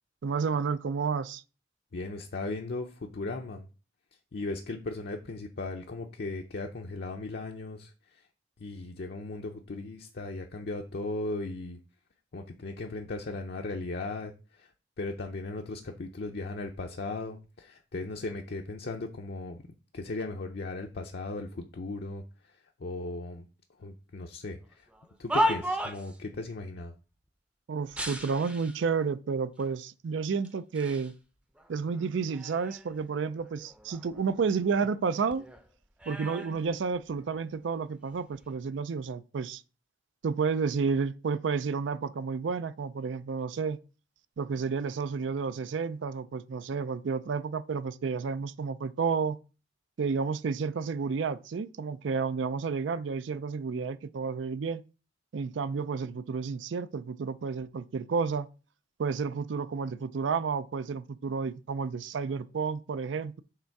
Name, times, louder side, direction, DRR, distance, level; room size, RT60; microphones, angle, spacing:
voice 1, 0.2-1.4 27.7-31.1 31.7-35.4 36.1-39.6 40.2-43.8 44.4-49.4 50.0-54.8 55.3-58.5 59.0-63.4, right 5 dB, 75° right, 0.4 m, -31 dB
voice 2, 1.9-3.7 4.3-8.2 8.6-11.8 12.3-14.7 15.0-19.6 19.9-22.2 22.8-23.5 23.8-24.9 25.2-26.9, left 2 dB, 60° left, 0.6 m, -37 dB
sound 1, 24.9-26.2 27.9-28.8 29.6-29.7 30.4-31.1 31.6-33.0 33.4-35.1 35.3-37.5 38.2-38.5, equal, 5° right, 0.6 m, -35 dB
6.6 x 3.5 x 4.6 m
head